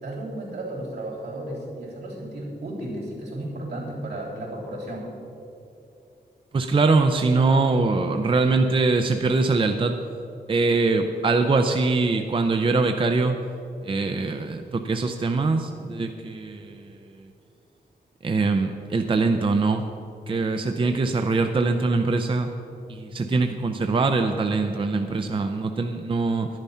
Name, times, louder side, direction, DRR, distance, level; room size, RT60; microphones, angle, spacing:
voice 1, 0.0-5.1, right 1 dB, 75° right, -4 dB, 3.4 m, -34 dB
voice 2, 6.5-10.0 10.5-13.4 13.8-17.0 18.2-19.8 20.3-22.5 22.9-26.5, right 3 dB, 30° right, 6 dB, 0.5 m, -23 dB
11.5 x 10.5 x 5.6 m, 2.7 s
wide cardioid pair, 160°, 17 cm